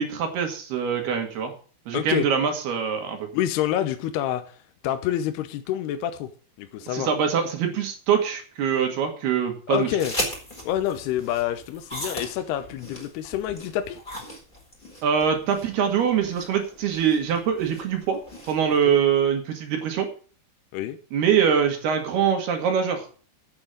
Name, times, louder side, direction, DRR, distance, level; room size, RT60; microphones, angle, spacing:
voice 1, 0.0-1.5 1.9-3.3 6.9-9.9 15.0-18.2 18.5-20.1 21.1-23.1, right 7 dB, 60° right, 4 dB, 3.6 m, -23 dB
voice 2, 1.9-2.3 3.3-4.6 4.8-6.3 6.6-7.1 9.7-10.1 10.6-14.0 18.9-19.0 20.7-21.0, left 11 dB, 75° left, 9 dB, 2.6 m, -27 dB
sound 1, 10.0-18.8, left 1 dB, 10° left, 4.2 m, -37 dB
8.7 x 8.1 x 8.8 m, 0.40 s
omnidirectional pair, 5.4 m